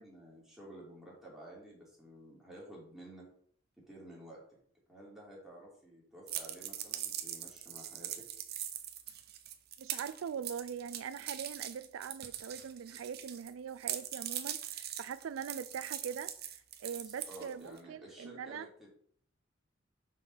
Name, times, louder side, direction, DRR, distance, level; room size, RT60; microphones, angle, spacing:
voice 1, 0.0-3.2 3.8-4.4 4.9-8.2 17.0-18.9, right 1 dB, ahead, 3.0 m, -52 dB
sound 1, 6.3-13.5 13.8-17.8, right 11 dB, 50° right, 0.8 m, -41 dB
voice 2, 9.8-16.3 16.8-18.7, right 7 dB, 90° right, 0.4 m, -42 dB
5.7 x 5.3 x 6.1 m
head